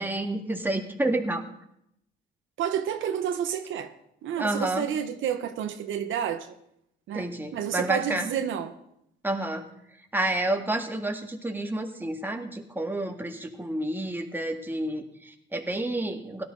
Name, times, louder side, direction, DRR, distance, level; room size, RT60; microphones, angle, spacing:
voice 1, 0.0-1.4 4.4-4.9 7.1-8.3 9.2-9.6 10.1-16.4, right 1 dB, 10° right, 1.8 m, -29 dB
voice 2, 2.6-3.9 4.2-6.6 7.1-8.7, right 9 dB, 75° right, 1.0 m, -30 dB
17.0 x 12.0 x 3.9 m
cardioid pair, 90°, 20 cm